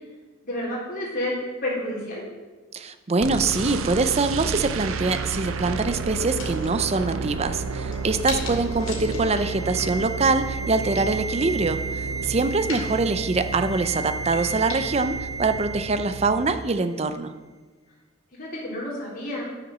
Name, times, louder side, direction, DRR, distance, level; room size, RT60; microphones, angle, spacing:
voice 1, 0.4-1.4 1.6-2.2 8.9-9.2 12.3-13.0 18.3-19.4, left 1 dB, 45° left, -5 dB, 3.5 m, -31 dB
voice 2, 2.7-17.3, right 3 dB, 30° right, 10 dB, 0.5 m, -24 dB
sound 1, 3.2-16.5, right 4 dB, 75° right, 0.6 m, -32 dB
sound 2, 4.2-16.3, left 2 dB, 70° left, 2.5 m, -41 dB
sound 3, 7.2-16.5 16.8-16.9, right 3 dB, 5° right, 2.5 m, -35 dB
9.0 x 7.1 x 6.1 m, 1.3 s
head